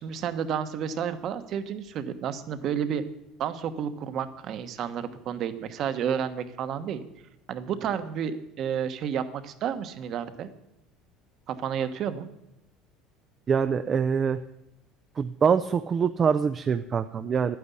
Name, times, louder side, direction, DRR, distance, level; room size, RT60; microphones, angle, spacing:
voice 1, 0.0-3.0 3.4-7.0 7.5-10.5 11.5-12.3, right 8 dB, 40° right, 10 dB, 1.1 m, -31 dB
voice 2, 13.5-14.4 15.2-17.6, right 6 dB, 25° right, 10 dB, 0.4 m, -24 dB
11.5 x 9.5 x 8.3 m, 0.87 s
cardioid pair, 165°, 0 cm